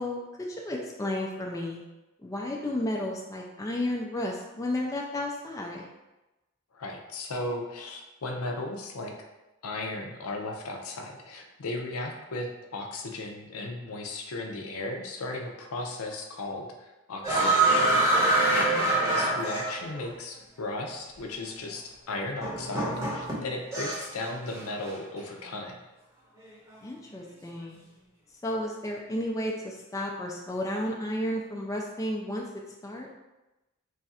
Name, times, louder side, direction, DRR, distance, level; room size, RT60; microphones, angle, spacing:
voice 1, 0.0-1.8 2.2-5.8 18.7-19.2 26.8-27.8 28.4-32.4 32.8-33.1, left 1 dB, 15° left, -1 dB, 0.3 m, -33 dB
voice 2, 6.7-9.1 9.6-18.7 19.1-25.8, left 2 dB, 80° left, 2 dB, 0.6 m, -36 dB
sound 1, 17.2-20.1 21.2-21.3 22.4-24.2 24.5-24.9, right 2 dB, 15° right, 0.8 m, -25 dB
3.2 x 2.4 x 4.1 m, 1.0 s
head